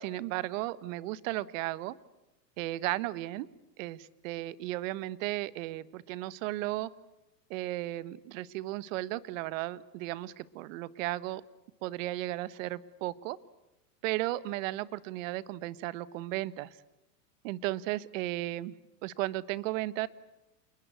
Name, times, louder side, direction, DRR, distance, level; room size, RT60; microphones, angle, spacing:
voice 1, 0.0-1.9 2.6-3.5 3.8-6.9 7.5-11.4 11.8-13.4 14.0-16.8 17.4-18.7 19.0-20.1, right 17 dB, 50° right, 18 dB, 1.4 m, -35 dB
28.5 x 21.0 x 8.2 m, 0.98 s
hypercardioid pair, 130°, 49 cm